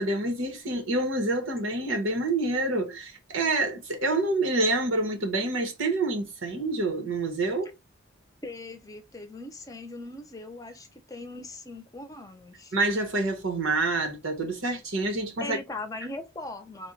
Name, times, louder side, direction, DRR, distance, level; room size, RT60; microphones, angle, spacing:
voice 1, 0.0-7.7 12.7-15.6, right 2 dB, 90° right, 1.2 m, -27 dB
voice 2, 8.4-12.7 15.4-16.9, left 2 dB, 20° left, 0.6 m, -40 dB
3.5 x 2.2 x 3.8 m
head